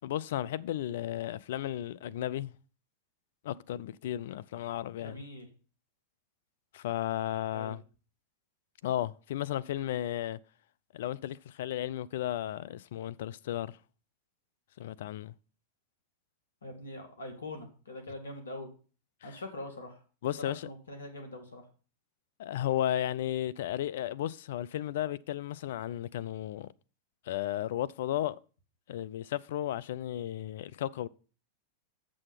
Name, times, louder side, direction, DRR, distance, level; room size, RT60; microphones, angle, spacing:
voice 1, 0.0-2.5 3.4-5.2 6.7-7.8 8.8-10.4 10.9-13.8 14.8-15.3 20.2-20.7 22.4-26.7 27.3-28.4 28.9-31.1, left 12 dB, 65° left, 0.4 m, -34 dB
voice 2, 5.0-5.5 7.5-7.8 16.6-18.7 19.2-20.0 20.4-21.6, left 1 dB, 85° left, 2.1 m, -43 dB
7.5 x 6.3 x 5.7 m
hypercardioid pair, 95°, 0 cm